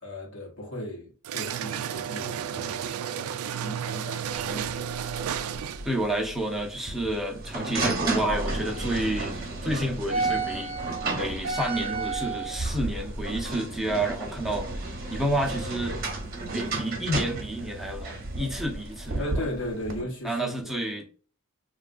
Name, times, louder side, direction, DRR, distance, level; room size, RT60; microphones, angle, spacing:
voice 1, 0.0-5.0 19.2-20.5, left 1 dB, 60° left, 1.0 m, -37 dB
sound 1, 1.2-6.0, right 8 dB, 80° right, 0.3 m, -32 dB
sound 2, 4.3-20.0, right 3 dB, 45° right, 0.9 m, -32 dB
voice 2, 5.8-14.7 15.1-16.0 16.5-19.3 20.2-21.1, right 1 dB, ahead, 0.7 m, -30 dB
3.5 x 2.4 x 2.4 m
head